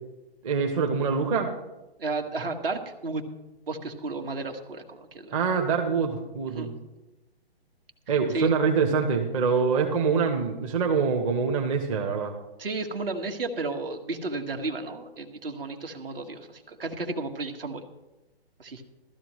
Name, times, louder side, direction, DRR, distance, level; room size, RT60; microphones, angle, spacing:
voice 1, 0.4-1.5 5.3-6.7 8.1-12.3, right 5 dB, 30° right, 3 dB, 1.1 m, -25 dB
voice 2, 2.0-3.2 3.7-5.3 6.5-6.7 8.3-8.5 12.6-17.8 18.6-18.8, right 3 dB, 60° right, 5 dB, 1.8 m, -33 dB
16.5 x 13.0 x 3.2 m, 1.0 s
figure-of-eight pair, 135°, 32 cm